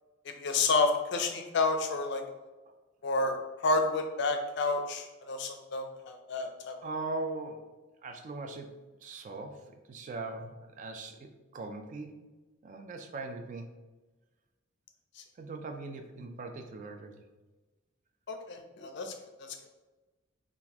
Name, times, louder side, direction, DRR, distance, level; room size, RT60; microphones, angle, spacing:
voice 1, 0.4-2.2 3.0-6.7 18.3-19.1, left 3 dB, 60° left, 5 dB, 0.4 m, -30 dB
voice 2, 6.8-7.6 8.0-8.7 9.0-12.2 12.6-13.6 15.4-17.2, right 3 dB, 40° right, 6 dB, 0.3 m, -40 dB
3.8 x 2.4 x 2.8 m, 1.2 s
head